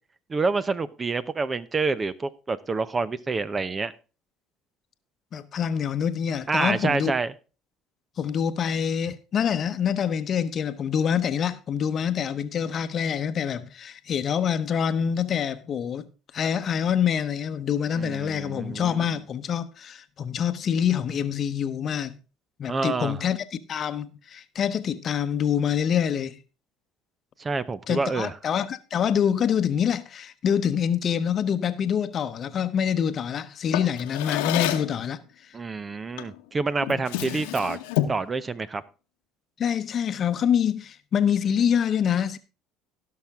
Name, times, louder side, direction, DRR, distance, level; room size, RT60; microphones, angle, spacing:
voice 1, 0.3-3.9 6.5-7.3 18.0-19.0 22.7-23.2 27.4-28.3 35.5-37.8 38.1-38.8, right 4 dB, 30° right, 0.8 m, -27 dB
voice 2, 5.3-7.1 8.2-16.1 16.3-22.1 22.6-26.4 27.9-35.2 39.6-42.4, left 8 dB, 45° left, 0.9 m, -26 dB
Drawer open or close, 33.7-35.0 36.2-36.4 36.8-38.3, left 13 dB, 80° left, 1.0 m, -28 dB
17.0 x 6.0 x 3.6 m
hypercardioid pair, 70°, 0 cm